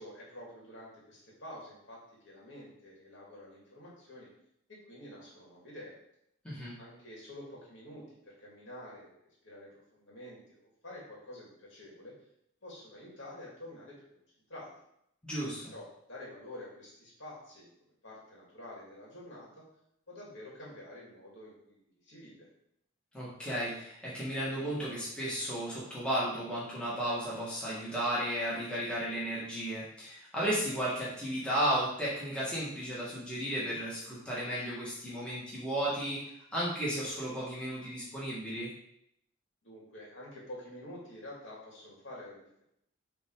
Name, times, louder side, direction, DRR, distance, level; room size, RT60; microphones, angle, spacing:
voice 1, 0.0-4.3 4.7-5.9 6.8-12.1 12.6-14.0 14.5-14.7 15.7-17.7 18.0-19.6 20.1-22.5 39.6-42.6, left 1 dB, 60° left, -4 dB, 2.4 m, -48 dB
voice 2, 6.4-6.8 15.2-15.7 23.1-36.2 36.5-38.7, right 1 dB, 5° left, -8 dB, 1.9 m, -34 dB
7.3 x 3.6 x 4.8 m, 0.75 s
head